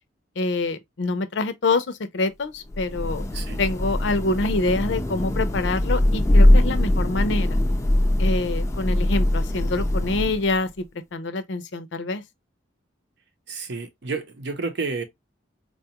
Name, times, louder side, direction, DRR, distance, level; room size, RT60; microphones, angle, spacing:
voice 1, 0.4-3.2 3.6-7.6 8.2-10.8 11.1-12.2, left 3 dB, 65° left, 0.5 m, -26 dB
Thunder / Rain, 2.6-10.7, left 1 dB, 15° left, 0.4 m, -21 dB
voice 2, 13.5-15.0, right 4 dB, 60° right, 0.7 m, -30 dB
4.1 x 2.3 x 2.8 m
head